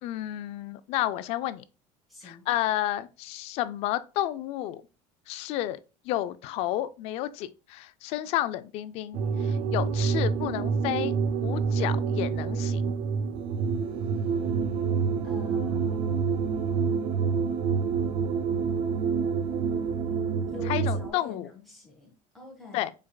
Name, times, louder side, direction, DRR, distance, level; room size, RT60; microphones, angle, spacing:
voice 1, 0.0-1.6 2.2-4.8 5.3-12.9 20.7-21.5 22.7-22.9, left 13 dB, 50° left, 0.4 m, -31 dB
voice 2, 2.1-2.5 15.2-16.1 20.5-22.9, left 4 dB, ahead, 1.4 m, -45 dB
sound 1, 9.1-21.1, right 5 dB, 45° right, 0.4 m, -27 dB
4.7 x 4.6 x 2.2 m
cardioid pair, 180°, 14 cm